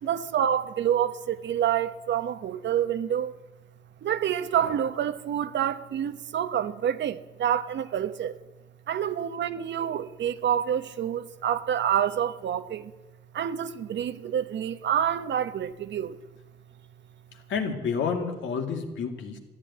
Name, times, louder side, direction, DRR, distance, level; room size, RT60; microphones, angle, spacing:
voice 1, 0.0-3.3 4.0-8.4 8.9-12.9 13.3-16.2, right 9 dB, 65° right, 1.0 m, -27 dB
voice 2, 17.5-19.4, left 6 dB, 75° left, 2.5 m, -29 dB
13.5 x 11.0 x 9.6 m
cardioid pair, 90°, 20 cm